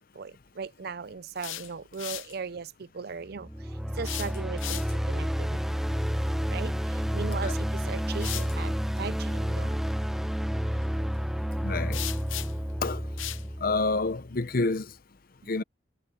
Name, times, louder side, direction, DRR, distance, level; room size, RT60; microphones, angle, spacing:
voice 1, 0.0-5.8 6.5-9.8, right 5 dB, 55° right, 0.5 m, -38 dB
sound 1, 1.2-2.4 4.0-5.1 7.2-7.3 8.1-8.6 11.9-12.7 13.2-13.5, left 14 dB, 80° left, 0.7 m, -37 dB
sound 2, 3.4-14.4, equal, ahead, 0.6 m, -30 dB
voice 2, 11.6-12.0 12.8-13.0 13.6-14.9 15.5-15.6, left 3 dB, 45° left, 0.7 m, -28 dB
head